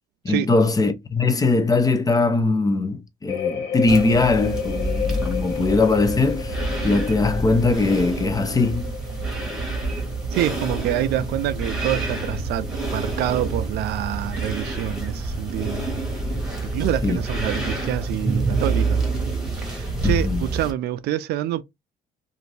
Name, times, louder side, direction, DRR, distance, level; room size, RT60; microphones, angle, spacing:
voice 1, 0.2-6.6 6.8-8.9 17.0-17.2 20.0-20.4, left 3 dB, 20° left, 0.6 m, -21 dB
sound 1, 3.3-11.9 12.2-12.7, left 7 dB, 70° left, 1.3 m, -32 dB
sound 2, 3.9-20.7, right 2 dB, 5° right, 1.2 m, -27 dB
voice 2, 10.3-12.7 12.9-15.8 16.6-19.0 19.7-21.6, right 13 dB, 75° right, 0.4 m, -26 dB
2.5 x 2.5 x 3.2 m
cardioid pair, 110°, 17 cm